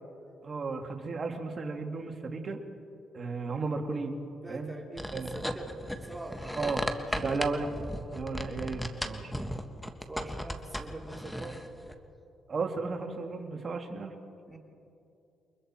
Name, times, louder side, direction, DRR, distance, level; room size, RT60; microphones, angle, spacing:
voice 1, 0.4-2.6 3.1-4.1 4.5-4.7 5.1-5.3 6.6-6.8 7.2-7.7 8.1-9.5 12.5-14.1, right 4 dB, 40° right, 4 dB, 2.3 m, -34 dB
voice 2, 4.4-7.4 10.1-11.7 14.5-14.6, right 2 dB, 10° right, 0 dB, 3.4 m, -44 dB
sound 1, 5.0-11.9, equal, 5° left, 1.4 m, -36 dB
28.5 x 23.0 x 4.4 m, 2.7 s
cardioid pair, 90°, 0 cm